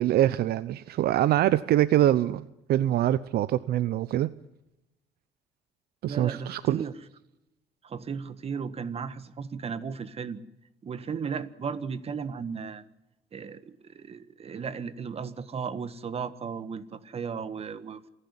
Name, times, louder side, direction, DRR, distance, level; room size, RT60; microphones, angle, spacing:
voice 1, 0.0-4.3 6.0-6.8, right 13 dB, 65° right, 16 dB, 0.7 m, -24 dB
voice 2, 6.1-6.9 7.8-10.4 10.8-12.8 13.3-18.1, right 6 dB, 35° right, 14 dB, 1.6 m, -35 dB
27.5 x 11.5 x 9.8 m, 0.92 s
cardioid pair, 110°, 17 cm